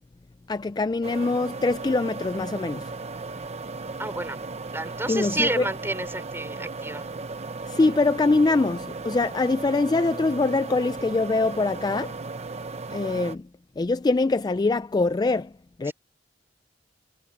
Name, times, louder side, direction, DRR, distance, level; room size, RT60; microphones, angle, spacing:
voice 1, 0.5-2.9 5.1-5.7 7.7-12.2 12.9-13.5 13.8-15.5 15.8-15.9, left 3 dB, 20° left, 0.3 m, -23 dB
sound 1, 1.0-13.3, right 3 dB, 35° right, 0.9 m, -36 dB
voice 2, 4.0-4.4 4.7-7.0 15.9-16.0, right 2 dB, 15° right, 3.4 m, -30 dB
head